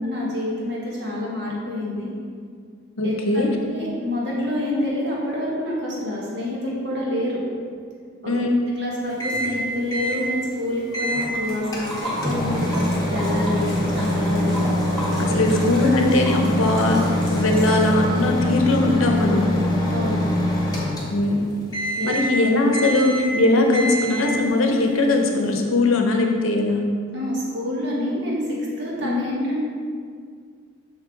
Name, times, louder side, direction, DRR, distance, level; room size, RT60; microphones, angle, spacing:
voice 1, 0.0-2.1 3.0-3.1 3.7-7.4 8.2-8.3 8.8-14.6 15.3-15.4 19.9-20.4 22.0-22.1 27.1-29.6, left 1 dB, 55° right, -5 dB, 1.6 m, -27 dB
voice 2, 3.0-3.5 8.3-8.7 14.4-14.8 15.2-17.0 17.3-19.6 21.1-21.4 22.0-26.9 29.0-29.3, left 2 dB, 80° left, 2 dB, 0.9 m, -20 dB
Microwave oven, 9.2-9.6 9.9-10.2 10.9-11.3 11.7-21.4 21.7-22.4 22.7-23.4 23.7-24.4, equal, 20° left, 0.9 m, -24 dB
Liquid, 11.1-18.3, equal, ahead, 1.6 m, -34 dB
6.4 x 5.9 x 3.8 m, 2.1 s
head